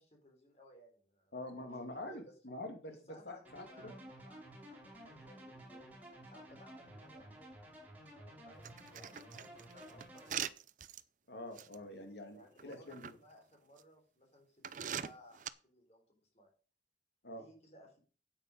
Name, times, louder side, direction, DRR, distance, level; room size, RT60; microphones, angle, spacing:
voice 1, 0.0-2.2 2.9-7.2 8.2-10.5 11.9-16.5 17.4-18.0, equal, 40° left, 1 dB, 3.9 m, -61 dB
voice 2, 1.3-2.9 3.3-3.9 11.3-13.1 17.2-17.4, left 1 dB, 80° left, 5 dB, 2.4 m, -46 dB
sound 1, 3.4-10.3, right 1 dB, 10° right, 4.8 m, -53 dB
sound 2, 8.6-11.0 11.6-11.7 12.6-13.1 13.8-13.9 14.6-15.5, right 9 dB, 45° right, 0.5 m, -42 dB
9.1 x 9.0 x 5.3 m, 0.38 s
head